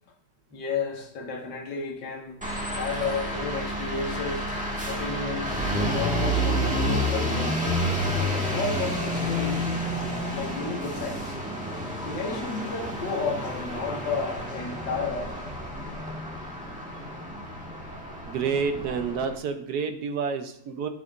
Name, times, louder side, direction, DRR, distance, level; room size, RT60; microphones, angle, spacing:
voice 1, 0.5-2.5 2.7-4.5 4.9-7.6 8.4-9.7 10.3-11.4 12.0-15.5, left 4 dB, 65° left, 2.1 m, -32 dB
sound 1, 2.4-19.3, equal, 5° right, 1.3 m, -30 dB
voice 2, 18.2-20.9, right 5 dB, 65° right, 1.1 m, -29 dB
11.5 x 7.4 x 2.5 m
omnidirectional pair, 2.3 m